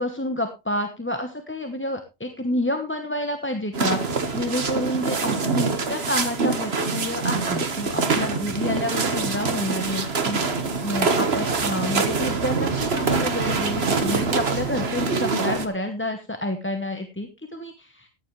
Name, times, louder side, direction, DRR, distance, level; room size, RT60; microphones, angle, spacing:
voice 1, 0.0-18.1, left 1 dB, 10° left, 6 dB, 1.0 m, -29 dB
sound 1, 3.7-15.7, right 4 dB, 65° right, 1.6 m, -25 dB
14.5 x 9.8 x 3.2 m, 0.26 s
omnidirectional pair, 1.1 m